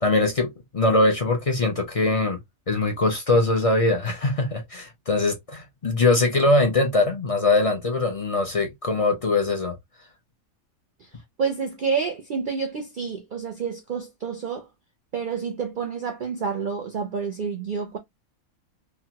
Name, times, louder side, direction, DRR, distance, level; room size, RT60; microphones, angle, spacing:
voice 1, 0.0-2.4 2.7-9.8, left 2 dB, 45° left, 0.4 m, -22 dB
voice 2, 11.4-14.7 15.1-18.0, right 6 dB, 65° right, 0.5 m, -29 dB
3.0 x 2.2 x 2.8 m
omnidirectional pair, 1.5 m